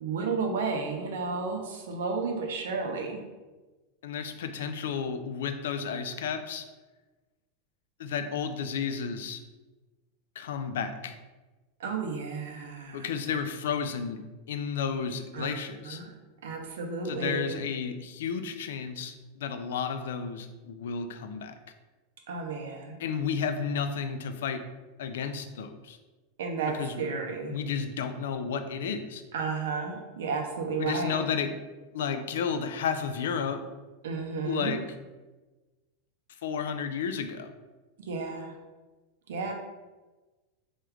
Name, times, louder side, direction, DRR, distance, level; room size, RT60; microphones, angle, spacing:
voice 1, 0.0-3.2 11.8-13.1 15.3-15.5 15.9-16.1 16.4-17.5 22.3-23.0 26.4-27.5 29.3-31.2 34.0-34.7 38.1-38.5 39.3-39.5, right 4 dB, 85° right, 3 dB, 0.6 m, -32 dB
voice 2, 4.0-6.6 8.0-9.4 10.4-11.2 12.9-14.2 14.5-16.0 17.0-21.5 23.0-24.6 25.0-26.0 26.7-27.1 27.5-29.2 30.8-31.5 31.9-33.6 34.4-34.8 36.4-37.5, left 6 dB, 90° left, 9 dB, 0.3 m, -32 dB
3.0 x 2.3 x 3.3 m, 1.2 s
supercardioid pair, 165°, 0 cm